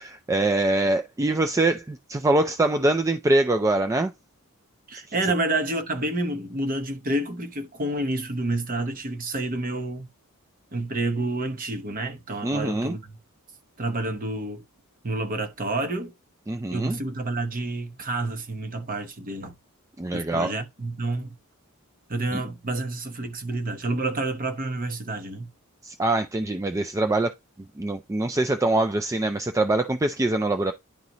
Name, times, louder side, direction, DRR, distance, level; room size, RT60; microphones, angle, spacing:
voice 1, 0.0-4.1 12.4-13.0 16.5-17.0 20.0-20.5 22.3-22.4 25.8-27.3 27.8-30.7, right 2 dB, 15° right, 0.3 m, -24 dB
voice 2, 4.9-10.1 10.7-13.2 13.8-14.6 15.0-16.1 16.7-19.5 20.1-21.4 22.1-25.5, right 2 dB, 40° right, 0.9 m, -29 dB
10.5 x 4.0 x 3.0 m
head